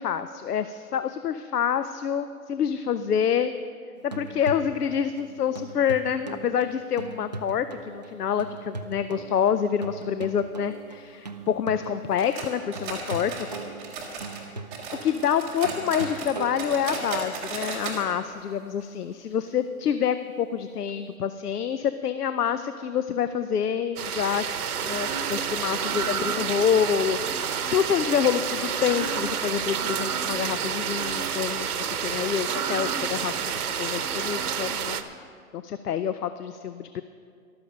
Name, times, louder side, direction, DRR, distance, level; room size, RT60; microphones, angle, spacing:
voice 1, 0.0-3.5 4.0-13.5 15.0-24.4 24.8-35.0 35.5-37.0, left 8 dB, 90° left, 11 dB, 0.7 m, -27 dB
sound 1, 4.0-17.3 20.9-21.0, right 3 dB, 30° right, 0.4 m, -40 dB
sound 2, 12.2-14.4 14.7-18.0 18.3-18.4 18.8-18.9 19.5-19.6, right 4 dB, 5° right, 0.8 m, -35 dB
sound 3, 24.0-35.0, right 7 dB, 80° right, 1.1 m, -29 dB
14.0 x 12.5 x 5.2 m, 2.2 s
hypercardioid pair, 165°, 45 cm